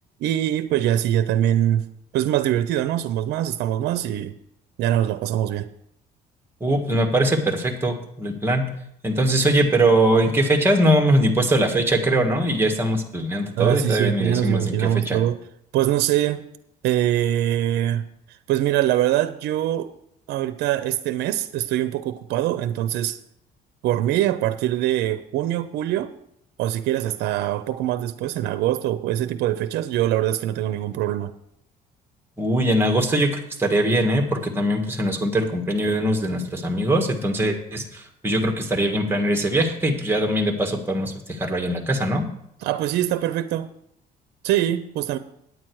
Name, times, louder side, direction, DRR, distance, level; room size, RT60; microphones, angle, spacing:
voice 1, 0.2-1.9 2.1-4.3 4.8-5.7 13.6-15.4 15.7-16.5 16.8-19.9 20.3-23.2 23.8-26.1 26.6-31.3 42.6-43.7 44.4-45.2, right 12 dB, 80° right, 13 dB, 0.6 m, -23 dB
voice 2, 6.6-8.6 9.0-15.2 32.4-42.2, right 1 dB, 15° right, 4 dB, 1.7 m, -21 dB
9.3 x 9.0 x 4.7 m, 0.74 s
cardioid pair, 110°, 17 cm